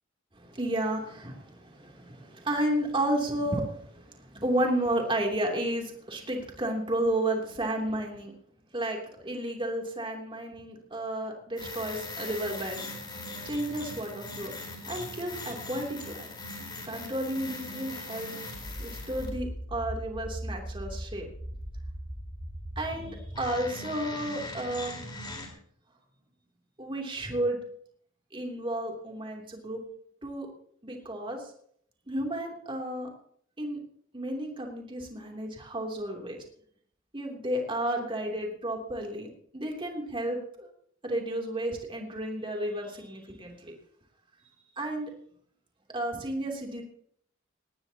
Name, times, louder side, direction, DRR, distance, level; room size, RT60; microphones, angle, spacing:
voice 1, 0.3-8.3 8.7-12.9 13.4-14.5 14.9-16.3 16.8-18.3 18.8-21.2 22.7-25.0 26.8-27.6 28.3-29.8 30.2-30.5 30.8-31.4 32.1-33.1 33.6-33.8 34.1-36.4 37.1-40.7 41.0-43.7 44.8-45.1 45.9-46.8, right 1 dB, 25° right, 1 dB, 3.2 m, -32 dB
sound 1, 11.6-25.5, left 1 dB, 25° left, 4.5 m, -39 dB
19.5 x 18.0 x 3.0 m, 0.63 s
head